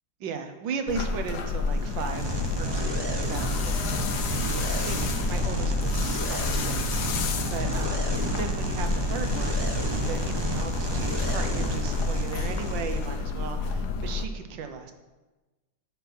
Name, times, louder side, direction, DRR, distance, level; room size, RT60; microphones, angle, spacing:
voice 1, 0.2-14.9, right 5 dB, 85° right, 6 dB, 1.6 m, -37 dB
sound 1, 0.9-14.2, left 4 dB, 65° left, 1.2 m, -30 dB
sound 2, 1.7-13.2, right 2 dB, 30° right, 0.4 m, -31 dB
8.9 x 6.0 x 5.5 m, 1.2 s
omnidirectional pair, 2.0 m